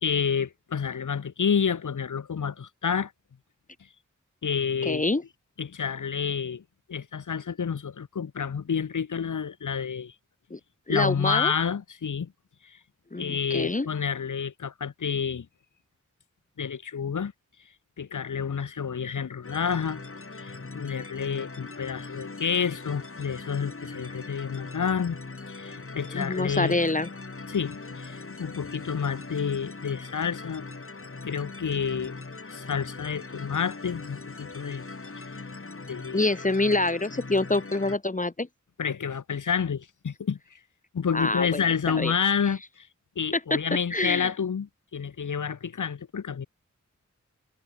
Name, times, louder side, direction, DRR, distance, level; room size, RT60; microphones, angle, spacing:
voice 1, 0.0-3.1 4.4-5.0 5.6-6.6 6.9-10.1 10.9-12.3 12.6-12.8 13.2-15.5 16.6-17.3 18.0-20.0 20.4-25.2 25.5-26.8 27.5-30.7 31.2-32.2 32.5-34.8 35.4-35.5 35.9-36.2 38.8-40.4 40.9-42.9 43.2-46.5, left 6 dB, 75° left, 1.0 m, -29 dB
voice 2, 4.8-5.2 10.5-10.6 10.9-11.5 13.1-13.9 26.1-27.1 36.1-38.5 41.1-42.1 43.5-43.6 43.9-44.3, left 2 dB, 25° left, 1.0 m, -26 dB
sound 1, 19.4-38.0, left 3 dB, 45° left, 2.2 m, -41 dB
cardioid pair, 45°, 31 cm